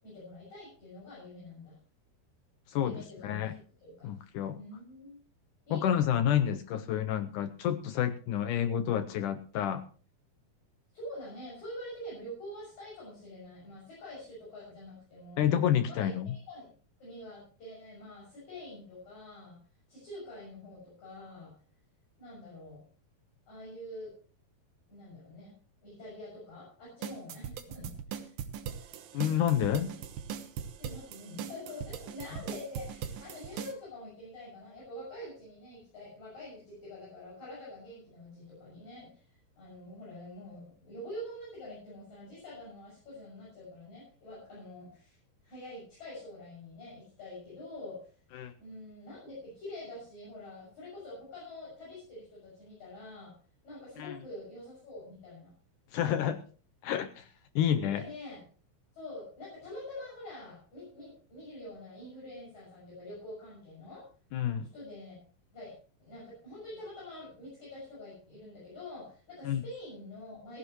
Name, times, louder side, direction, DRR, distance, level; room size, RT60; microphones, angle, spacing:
voice 1, 0.0-1.8 2.8-3.5 3.8-4.1 4.5-5.2 5.7-6.1 10.9-15.6 15.9-16.7 17.0-19.6 19.9-21.5 22.2-22.8 23.5-24.1 24.9-25.6 25.8-28.4 30.8-39.2 39.6-45.2 45.4-48.1 48.6-53.3 53.6-55.5 57.8-58.4 58.9-64.1 64.7-65.2 65.5-65.7 66.0-70.6, left 1 dB, 50° left, -6 dB, 7.9 m, -46 dB
voice 2, 2.7-3.5 4.0-4.6 5.7-9.8 15.4-16.3 29.1-29.9 48.3-48.5 54.0-54.2 55.9-56.4 56.8-57.3 57.6-58.0 64.3-64.7 69.4-69.6, left 10 dB, 75° left, 11 dB, 1.9 m, -29 dB
sound 1, 27.0-33.7, right 8 dB, 70° right, 2.7 m, -40 dB
16.5 x 16.0 x 3.1 m, 0.40 s
omnidirectional pair, 4.3 m